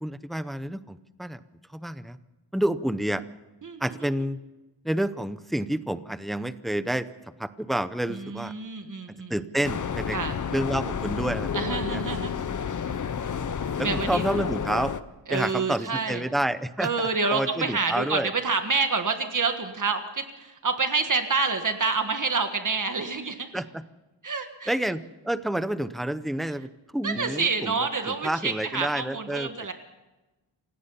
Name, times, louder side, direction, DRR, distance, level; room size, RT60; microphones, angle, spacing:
voice 1, 0.0-1.4 1.7-2.2 2.5-3.2 3.8-4.4 4.8-7.1 7.4-8.5 9.3-10.2 10.5-12.0 13.8-14.9 15.3-18.3 23.5-23.6 24.7-29.7, right 1 dB, ahead, 13 dB, 0.6 m, -29 dB
voice 2, 3.6-4.0 8.1-9.3 10.1-10.4 11.5-12.3 13.8-14.4 15.3-16.2 16.8-23.5 24.2-24.7 27.0-29.7, right 4 dB, 40° right, 6 dB, 1.5 m, -28 dB
sound 1, 9.6-15.0, left 7 dB, 40° left, 0.8 m, -30 dB
28.0 x 16.5 x 5.6 m, 1.1 s
wide cardioid pair, 170°, 46 cm